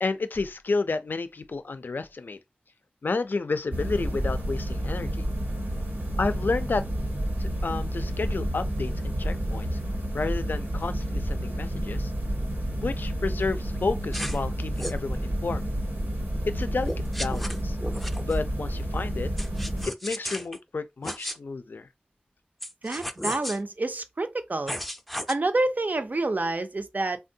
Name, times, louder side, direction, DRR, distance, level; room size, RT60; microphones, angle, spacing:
voice 1, 0.0-2.4 3.0-5.3 6.2-6.8 7.4-9.8 10.1-12.1 12.8-15.6 16.5-17.8 18.2-19.3 19.9-21.9, left 3 dB, 80° left, 0.3 m, -31 dB
sound 1, 3.7-19.9, equal, 80° right, 0.9 m, -30 dB
sound 2, 14.1-14.4 14.8-15.0 16.8-18.4 19.4-20.6 21.0-21.4 22.6-23.6 24.7-25.3, equal, ahead, 0.4 m, -34 dB
voice 2, 22.8-24.7 25.3-27.2, right 2 dB, 60° right, 0.5 m, -28 dB
3.5 x 2.2 x 2.6 m
wide cardioid pair, 45°, 3 cm